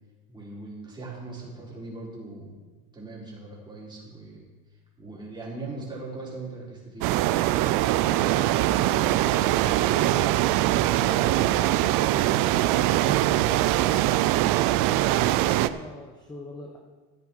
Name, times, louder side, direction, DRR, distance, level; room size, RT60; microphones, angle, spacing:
voice 1, 0.3-2.7 2.9-4.5 5.0-7.1, right 3 dB, 10° right, -5 dB, 4.4 m, -39 dB
sound 1, 7.0-15.7, right 15 dB, 50° right, 0.6 m, -22 dB
voice 2, 8.2-11.5 11.8-14.1 14.8-16.8, left 1 dB, 10° left, 2 dB, 1.2 m, -41 dB
Bass guitar, 9.9-14.0, right 9 dB, 90° right, 0.7 m, -42 dB
13.5 x 9.5 x 4.6 m, 1.3 s
supercardioid pair, 115°, 43 cm